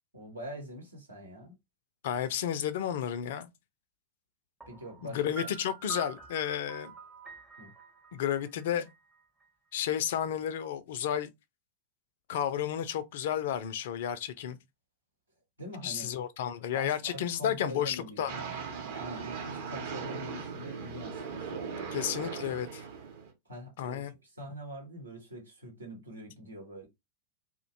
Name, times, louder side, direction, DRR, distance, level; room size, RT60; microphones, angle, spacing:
voice 1, 0.1-1.6 4.7-5.5 7.6-7.7 15.6-16.1 16.7-18.3 18.9-22.1 23.4-26.9, equal, 80° right, 0.9 m, -44 dB
voice 2, 2.0-3.5 5.0-6.9 8.1-8.9 9.7-11.3 12.3-14.6 15.8-18.3 21.9-22.8 23.8-24.1, left 10 dB, 55° left, 0.3 m, -32 dB
Piano, 4.6-9.4, right 6 dB, 10° right, 0.5 m, -47 dB
sound 1, 18.3-23.3, right 6 dB, 55° right, 0.7 m, -39 dB
2.4 x 2.1 x 2.5 m
figure-of-eight pair, 90°, 0 cm